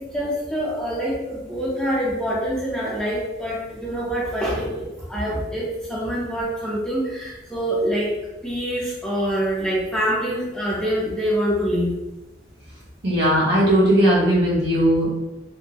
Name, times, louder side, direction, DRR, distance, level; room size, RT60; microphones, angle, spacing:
voice 1, 0.0-8.2 8.4-11.9, equal, 5° left, -7 dB, 0.6 m, -25 dB
voice 2, 13.0-15.1, equal, 60° right, -6 dB, 1.1 m, -18 dB
3.5 x 2.1 x 2.9 m, 1.0 s
head